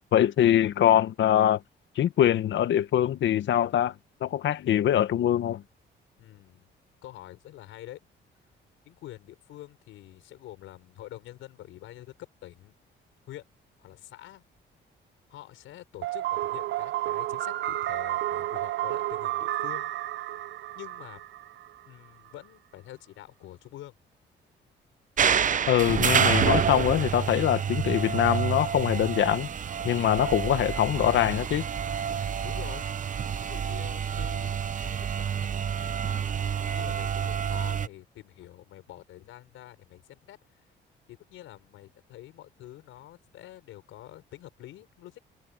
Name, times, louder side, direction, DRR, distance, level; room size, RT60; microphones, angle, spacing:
voice 1, 0.1-1.6 2.0-3.9 4.2-5.6 25.7-29.5 29.8-31.7, left 11 dB, 70° left, 1.3 m, -23 dB
voice 2, 6.2-6.7 7.0-8.0 8.9-12.7 13.3-13.5 13.8-14.4 15.3-19.9 20.7-21.2 21.8-23.9 32.2-32.9 33.3-35.3 35.8-36.3 36.7-40.4 41.1-45.2, left 14 dB, 90° left, 6.0 m, -46 dB
sound 1, 16.0-21.9, right 15 dB, 70° right, 0.6 m, -31 dB
sound 2, 25.2-37.9, right 7 dB, 40° right, 0.8 m, -28 dB
cardioid pair, 90°, 20 cm